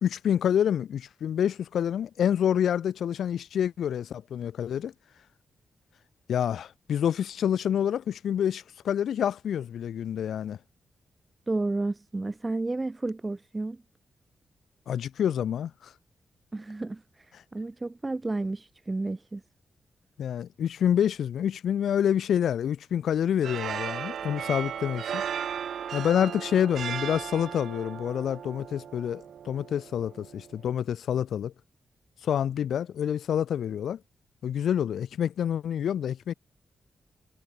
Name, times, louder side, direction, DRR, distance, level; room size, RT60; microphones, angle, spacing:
voice 1, 0.0-4.9 6.3-10.6 14.9-15.9 20.2-25.2 25.9-31.5 32.2-34.0 34.4-36.3, left 9 dB, 90° left, 1.1 m, -27 dB
voice 2, 11.5-13.8 16.5-17.0 17.5-19.4, right 2 dB, 20° right, 2.2 m, -31 dB
sound 1, 23.4-30.7, right 8 dB, 80° right, 4.1 m, -36 dB
wide cardioid pair, 105°, 0 cm